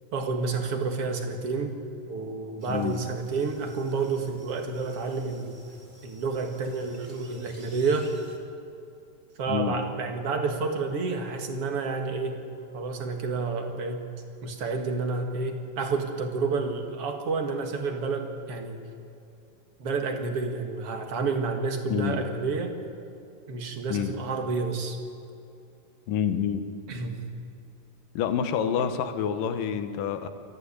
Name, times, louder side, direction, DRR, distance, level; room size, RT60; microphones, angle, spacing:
voice 1, 0.1-1.7 2.1-5.6 6.0-8.1 9.4-12.4 12.7-14.1 14.4-18.8 19.8-22.7 23.5-25.0 26.9-27.2 28.8-28.9, right 4 dB, 50° right, 4 dB, 2.4 m, -29 dB
sound 1, 2.6-8.4, right 1 dB, 20° right, 1.6 m, -52 dB
voice 2, 2.7-3.0 9.5-9.8 21.9-22.2 23.9-24.1 26.1-26.6 28.2-30.3, left 8 dB, 80° left, 8 dB, 2.8 m, -27 dB
22.0 x 14.0 x 9.9 m, 2.6 s
omnidirectional pair, 3.9 m